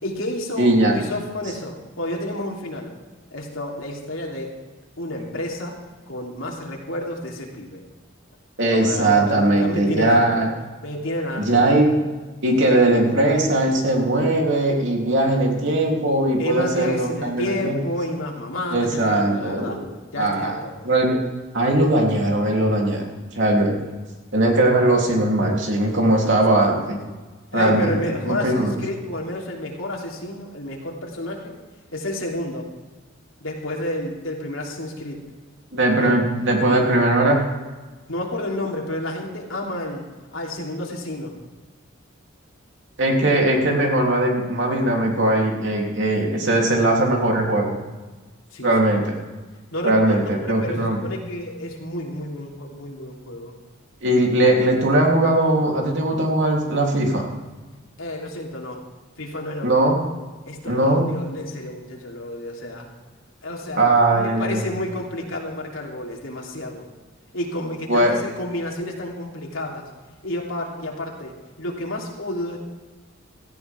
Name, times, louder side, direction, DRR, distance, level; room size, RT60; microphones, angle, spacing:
voice 1, 0.0-2.9 3.3-4.6 5.0-5.8 6.1-7.8 8.6-10.5 10.8-11.7 16.4-19.8 20.1-20.9 26.3-26.8 27.1-27.2 27.5-31.5 31.9-32.7 33.4-35.2 36.0-36.1 38.1-41.3 48.5-48.7 49.7-53.5 58.0-58.8 59.2-59.9 60.5-62.9 63.4-66.8 67.3-69.8 70.2-72.6, left 1 dB, 80° left, -1 dB, 3.3 m, -30 dB
voice 2, 0.6-1.0 8.6-10.5 11.4-12.0 12.4-17.8 18.7-19.8 20.2-20.6 20.8-21.2 21.5-23.0 23.3-23.8 24.3-27.0 27.5-28.0 28.2-28.7 35.7-37.4 43.0-47.7 48.6-49.2 49.8-51.0 54.0-57.2 59.6-60.0 60.7-61.1 63.7-64.6 67.9-68.2, right 1 dB, 65° right, 0 dB, 3.2 m, -19 dB
17.5 x 14.5 x 3.6 m, 1.3 s
head